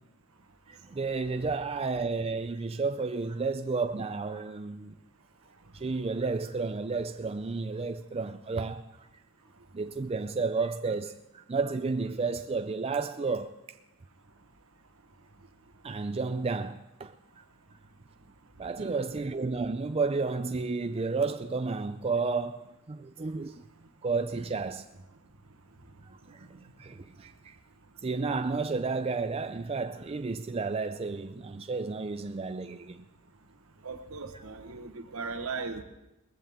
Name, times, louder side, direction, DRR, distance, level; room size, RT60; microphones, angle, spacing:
voice 1, 0.7-5.0 5.7-8.9 9.7-13.6 15.8-17.1 18.6-23.7 24.0-24.8 26.3-26.5 26.8-27.6 28.0-33.0, right 4 dB, 25° right, 0.4 m, -32 dB
voice 2, 33.8-35.8, right 4 dB, 70° right, 1.4 m, -37 dB
20.0 x 15.0 x 3.6 m
head